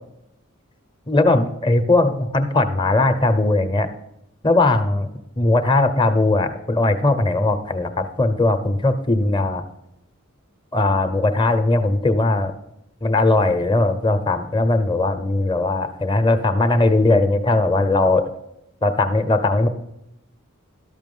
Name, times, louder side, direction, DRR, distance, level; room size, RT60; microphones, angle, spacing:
voice 1, 1.1-3.9 4.4-5.1 5.4-9.6 10.7-12.5 13.0-18.3 18.8-19.7, left 2 dB, 20° left, 9 dB, 0.8 m, -19 dB
13.0 x 6.1 x 5.4 m, 0.82 s
head